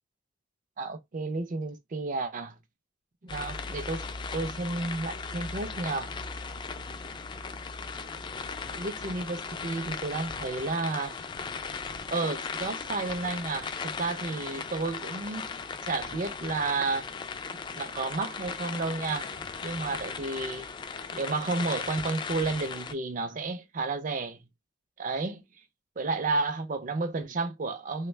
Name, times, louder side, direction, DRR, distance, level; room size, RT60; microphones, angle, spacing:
voice 1, 0.8-2.6 3.2-4.1 4.3-6.1 8.7-11.2 12.1-15.4 15.8-17.1 17.5-19.3 19.6-20.7 21.1-24.4 25.0-25.4 26.0-28.1, right 3 dB, 40° right, 0.4 m, -32 dB
sound 1, 3.3-22.9, left 5 dB, 25° left, 0.3 m, -37 dB
3.2 x 2.1 x 3.1 m
head